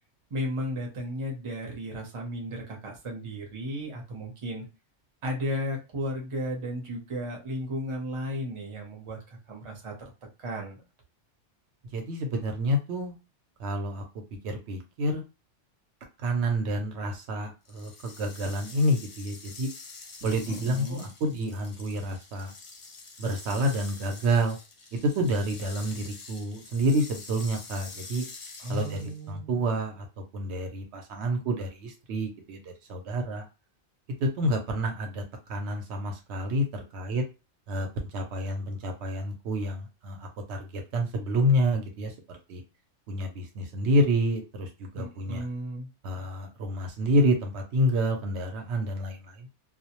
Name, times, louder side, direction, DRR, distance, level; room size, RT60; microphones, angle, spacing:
voice 1, 0.3-4.7 5.2-9.9 10.4-10.8 20.5-21.1 28.6-29.6 44.9-45.9, equal, 35° right, 0 dB, 0.6 m, -34 dB
voice 2, 11.9-13.1 13.6-14.0 14.4-15.2 16.2-19.7 20.2-22.5 23.2-24.6 24.9-28.2 28.7-30.1 30.3-33.5 34.2-35.2 35.5-37.2 37.7-37.9 38.1-42.6 43.1-45.5 46.0-49.5, equal, 70° right, 3 dB, 0.8 m, -28 dB
sound 1, 17.6-29.3, left 4 dB, 55° left, 0.3 m, -46 dB
2.2 x 2.0 x 2.8 m, 0.28 s
omnidirectional pair, 1.2 m